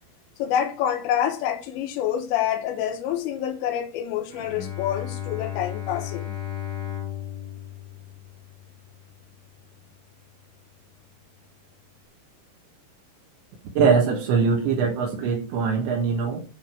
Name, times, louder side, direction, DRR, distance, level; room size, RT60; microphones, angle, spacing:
voice 1, 0.4-6.4, left 10 dB, 75° left, 3.3 m, -27 dB
Bowed string instrument, 4.3-9.6, left 11 dB, 35° left, 1.1 m, -35 dB
voice 2, 13.8-16.4, right 5 dB, 70° right, 3.4 m, -22 dB
10.5 x 3.6 x 6.0 m
omnidirectional pair, 5.8 m